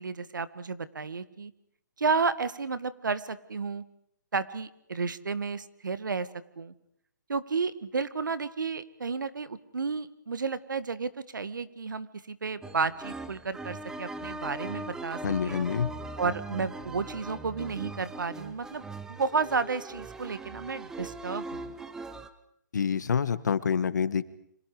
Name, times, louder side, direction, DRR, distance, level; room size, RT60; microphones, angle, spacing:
voice 1, 0.0-1.5 2.0-3.8 4.3-6.3 6.6-6.7 7.3-15.6 16.2-21.7, right 4 dB, 85° right, 14 dB, 1.9 m, -32 dB
sound 1, 12.6-22.3, right 2 dB, 5° right, 1.0 m, -40 dB
voice 2, 15.2-15.9 22.7-24.2, left 7 dB, 65° left, 14 dB, 1.7 m, -27 dB
29.0 x 26.0 x 5.0 m, 0.73 s
hypercardioid pair, 160°, 10 cm